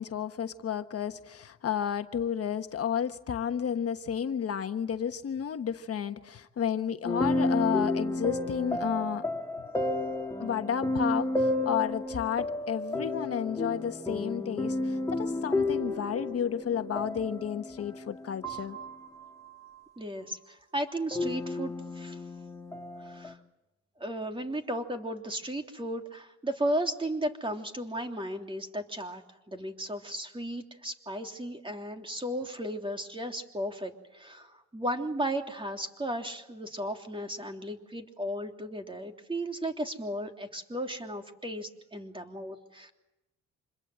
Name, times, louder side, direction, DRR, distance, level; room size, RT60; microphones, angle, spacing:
voice 1, 0.0-9.2 10.4-18.8, left 8 dB, 55° left, 8 dB, 1.3 m, -32 dB
sound 1, 7.1-19.8 21.1-23.3, left 2 dB, 10° left, 2.4 m, -32 dB
voice 2, 20.0-22.2 23.0-23.4 24.0-29.2 29.5-42.9, right 1 dB, 15° right, 4 dB, 3.2 m, -35 dB
27.0 x 21.5 x 7.9 m, 0.99 s
cardioid pair, 70°, 29 cm